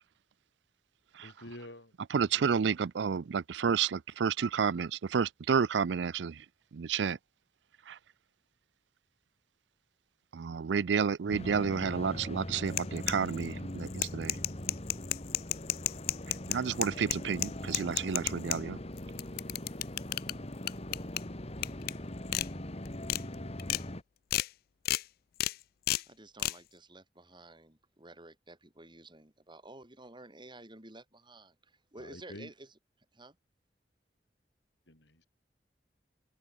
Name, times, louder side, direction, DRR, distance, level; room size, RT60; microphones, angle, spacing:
voice 1, 1.2-1.9 2.2-2.6 32.0-32.5 34.9-35.3, left 1 dB, 80° left, 7.1 m, -48 dB
voice 2, 2.1-6.5 6.7-7.2 7.9-8.0 10.3-14.4 16.5-18.8, right 6 dB, 75° right, 0.4 m, -30 dB
sound 1, 11.3-24.0, left 1 dB, 35° left, 2.4 m, -41 dB
sound 2, 12.7-13.5 13.9-18.6 19.0-20.3 20.7-21.2 21.6-21.9 22.3-22.5 22.9-23.2 23.6-23.8 24.3-24.5 24.8-25.0 25.4-25.5 25.9-26.0 26.4-26.5, left 15 dB, 55° left, 0.3 m, -31 dB
voice 3, 26.1-32.8 33.1-33.4, right 2 dB, 25° right, 4.5 m, -52 dB
head